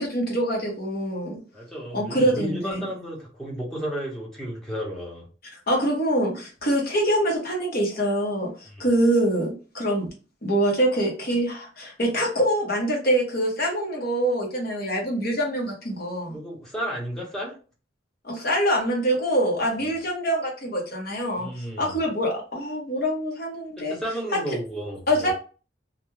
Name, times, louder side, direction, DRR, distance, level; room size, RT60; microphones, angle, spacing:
voice 1, 0.0-1.4 1.9-2.8 5.7-8.5 8.8-10.1 10.4-16.4 18.2-21.5 21.8-24.0 24.3-24.4 25.1-25.3, right 1 dB, 55° left, -1 dB, 1.1 m, -24 dB
voice 2, 1.5-5.3 8.7-8.9 16.3-17.5 21.4-22.0 23.9-25.3, equal, 5° left, -4 dB, 0.9 m, -33 dB
2.5 x 2.2 x 3.1 m, 0.35 s
head